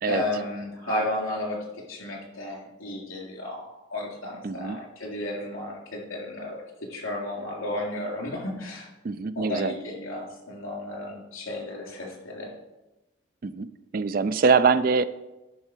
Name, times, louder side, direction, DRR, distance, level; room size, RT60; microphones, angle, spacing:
voice 1, 0.0-6.6 6.9-8.9 9.3-12.5, left 1 dB, 80° left, -1 dB, 3.2 m, -33 dB
voice 2, 4.4-4.8 9.0-9.7 13.4-13.7 13.9-15.0, right 5 dB, 45° right, 14 dB, 0.3 m, -23 dB
10.5 x 5.8 x 4.5 m, 1.0 s
head